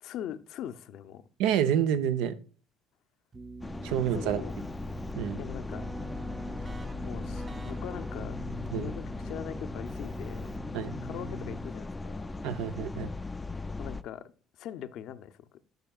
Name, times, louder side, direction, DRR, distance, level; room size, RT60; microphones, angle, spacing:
voice 1, 0.0-1.2 3.9-4.5 5.4-5.9 7.0-8.4 8.7-10.5 11.0-12.3 13.8-14.3 14.6-15.5, left 10 dB, 65° left, 0.6 m, -41 dB
voice 2, 1.4-2.4 3.8-4.4 5.1-5.4 8.7-8.9 10.7-10.9 12.4-13.1, right 9 dB, 80° right, 0.7 m, -28 dB
Keyboard (musical), 3.3-12.0, right 1 dB, 25° right, 0.8 m, -43 dB
sound 1, 3.6-14.0, left 3 dB, 15° left, 0.4 m, -38 dB
10.5 x 5.7 x 2.4 m
supercardioid pair, 90°, 0 cm